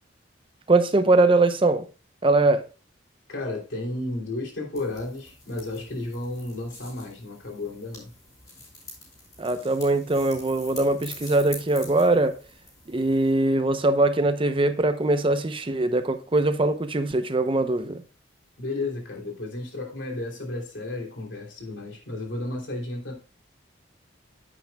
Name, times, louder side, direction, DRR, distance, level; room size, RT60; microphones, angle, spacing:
voice 1, 0.7-1.9 2.2-2.6 9.4-12.4 12.9-18.0, right 2 dB, 30° right, 0.7 m, -22 dB
voice 2, 3.3-8.1 18.6-23.1, left 2 dB, 75° left, 3.0 m, -33 dB
sound 1, 4.7-13.3, left 2 dB, 20° left, 4.6 m, -45 dB
9.5 x 8.6 x 2.3 m
head